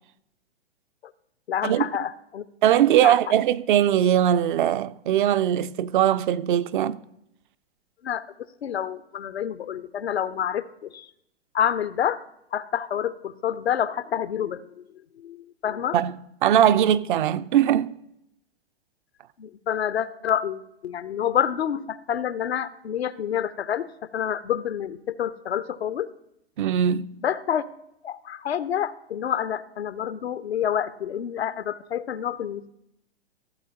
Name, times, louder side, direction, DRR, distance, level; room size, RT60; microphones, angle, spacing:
voice 1, 1.5-2.4 3.0-3.2 8.0-8.2 8.6-11.1 11.5-12.2 12.5-14.8 15.2-16.0 19.4-23.9 24.1-26.1 27.2-27.7 28.0-32.7, left 9 dB, 80° left, 0.6 m, -28 dB
voice 2, 2.6-7.0 15.9-16.1 16.4-17.9 26.6-27.1, right 10 dB, 50° right, 0.4 m, -20 dB
15.5 x 7.6 x 2.8 m
hypercardioid pair, 115°, 32 cm